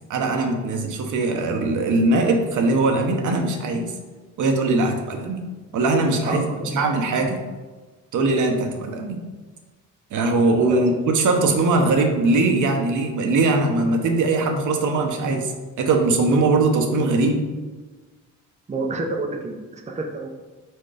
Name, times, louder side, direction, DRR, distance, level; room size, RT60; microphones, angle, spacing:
voice 1, 0.1-3.9 4.4-5.4 5.7-7.4 8.1-9.2 10.1-15.5 15.8-17.4, right 2 dB, 65° right, 3 dB, 1.0 m, -21 dB
voice 2, 6.3-6.9 10.7-10.8 18.7-20.3, right 2 dB, 20° right, 2 dB, 0.6 m, -29 dB
4.5 x 4.4 x 4.9 m, 1.3 s
cardioid pair, 110°, 34 cm